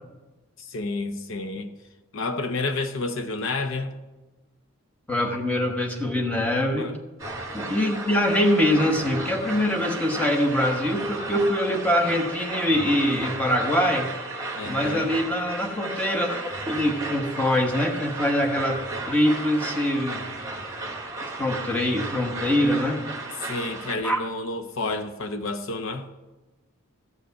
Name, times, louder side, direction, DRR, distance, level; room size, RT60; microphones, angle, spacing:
voice 1, 0.6-1.7 2.1-3.9 6.8-7.0 14.5-15.1 23.4-26.1, left 3 dB, 60° left, 0.7 m, -30 dB
voice 2, 5.1-6.9 7.5-14.1 14.6-16.3 16.7-18.8 19.1-20.2 21.4-23.0 24.0-24.2, left 1 dB, 5° left, 1.2 m, -23 dB
sound 1, 7.2-23.9, right 2 dB, 15° right, 1.3 m, -34 dB
14.0 x 5.1 x 8.1 m
head